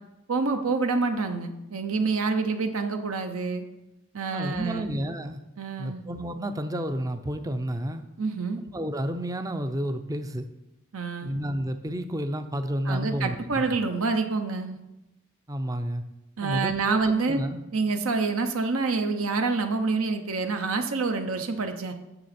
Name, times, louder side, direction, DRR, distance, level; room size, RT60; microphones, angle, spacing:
voice 1, 0.3-3.6 4.1-4.9 5.6-6.0 8.2-8.6 10.9-11.3 12.9-14.8 16.4-17.4 17.7-21.9, right 4 dB, 70° right, 6 dB, 0.8 m, -27 dB
voice 2, 4.3-5.4 5.8-8.0 8.6-10.5 11.2-13.6 15.5-16.0 16.4-17.6, equal, 15° right, 9 dB, 0.5 m, -31 dB
9.5 x 6.8 x 4.3 m, 0.95 s
head